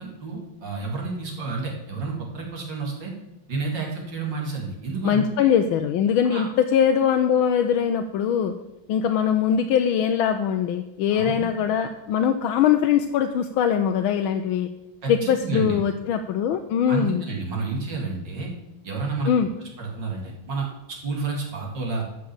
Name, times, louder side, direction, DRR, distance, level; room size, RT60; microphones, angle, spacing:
voice 1, 0.0-3.1 3.5-5.5 6.2-6.5 11.1-11.4 15.0-15.8 16.9-18.5 18.8-19.3 19.8-22.0, right 3 dB, 60° right, -1 dB, 3.1 m, -30 dB
voice 2, 5.0-8.5 8.9-14.7 15.1-17.2 19.3-19.5, left 8 dB, 80° left, 6 dB, 1.4 m, -22 dB
12.5 x 6.2 x 7.1 m, 0.92 s
omnidirectional pair, 2.3 m